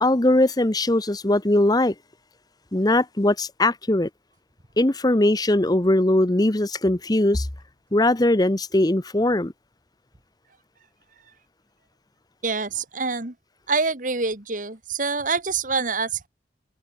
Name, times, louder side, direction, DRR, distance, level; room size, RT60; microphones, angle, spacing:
voice 1, 0.0-1.9 2.7-4.1 4.8-7.5 7.9-9.5, left 1 dB, 20° left, 0.9 m, -20 dB
voice 2, 12.4-13.3 13.7-16.3, right 4 dB, 45° right, 2.1 m, -26 dB
head